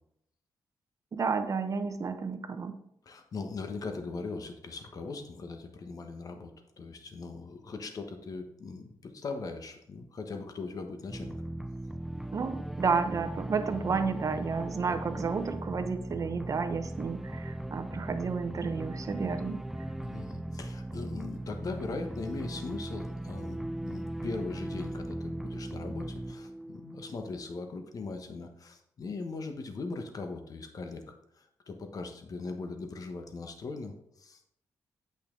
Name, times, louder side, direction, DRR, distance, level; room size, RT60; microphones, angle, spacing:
voice 1, 1.1-2.7 12.3-19.6, right 5 dB, 45° right, 8 dB, 0.9 m, -31 dB
voice 2, 3.0-11.4 20.0-34.5, left 3 dB, 50° left, 5 dB, 1.1 m, -40 dB
sound 1, 11.1-27.6, right 1 dB, 5° right, 0.3 m, -38 dB
8.7 x 5.7 x 3.8 m, 0.76 s
cardioid pair, 85°, 8 cm